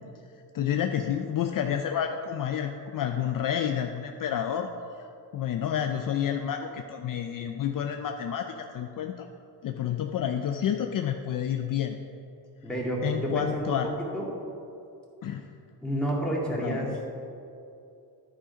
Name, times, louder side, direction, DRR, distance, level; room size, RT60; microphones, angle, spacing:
voice 1, 0.5-4.7 5.3-9.3 9.6-12.0 13.0-13.9 15.2-15.4 16.6-17.0, left 9 dB, 55° left, 5 dB, 0.6 m, -29 dB
voice 2, 12.6-13.8 14.1-14.3 15.8-16.9, right 1 dB, ahead, -4 dB, 2.2 m, -29 dB
11.0 x 5.1 x 5.1 m, 2.6 s
cardioid pair, 95°, 41 cm